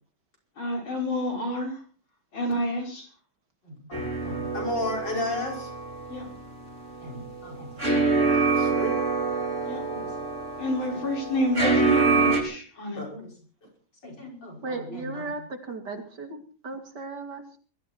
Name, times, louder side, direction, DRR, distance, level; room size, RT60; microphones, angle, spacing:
voice 1, 0.6-1.8 2.3-3.1 6.1-6.3 9.6-9.8 10.6-13.0, equal, 80° left, 1 dB, 6.6 m, -28 dB
voice 2, 3.6-5.7 7.0-8.9 9.9-10.1 10.9-11.0 12.9-13.3 14.0-15.3, left 1 dB, 60° left, 1 dB, 6.3 m, -35 dB
sound 1, 3.9-12.4, right 4 dB, 35° right, 3.9 m, -26 dB
voice 3, 14.6-17.6, right 3 dB, 55° right, 6 dB, 3.1 m, -36 dB
21.5 x 14.0 x 4.5 m, 0.39 s
omnidirectional pair, 2.2 m